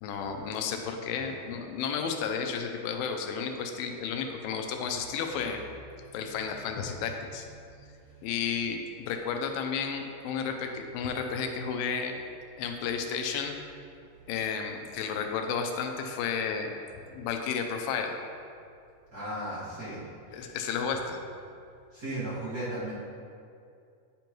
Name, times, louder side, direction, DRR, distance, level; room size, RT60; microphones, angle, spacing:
voice 1, 0.0-5.6 6.1-7.5 8.2-12.2 12.6-13.5 14.3-16.7 17.1-18.2 20.3-21.2, left 6 dB, 90° left, 4 dB, 2.4 m, -32 dB
voice 2, 7.6-8.2 19.1-20.0 20.3-20.6 21.9-22.9, right 1 dB, 35° right, -12 dB, 1.8 m, -37 dB
9.7 x 5.2 x 3.0 m, 2.4 s
omnidirectional pair, 4.0 m